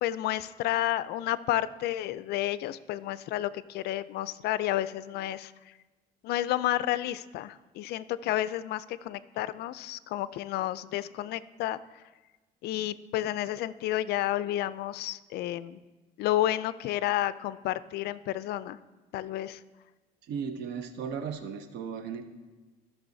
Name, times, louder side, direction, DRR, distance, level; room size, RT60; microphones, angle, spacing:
voice 1, 0.0-5.5 6.2-12.0 12.6-15.8 16.2-18.8 19.1-19.6, left 13 dB, 75° left, 16 dB, 0.4 m, -31 dB
voice 2, 20.3-22.2, right 6 dB, 80° right, 7 dB, 0.9 m, -36 dB
15.5 x 6.2 x 2.7 m, 1.2 s
cardioid pair, 110°, 17 cm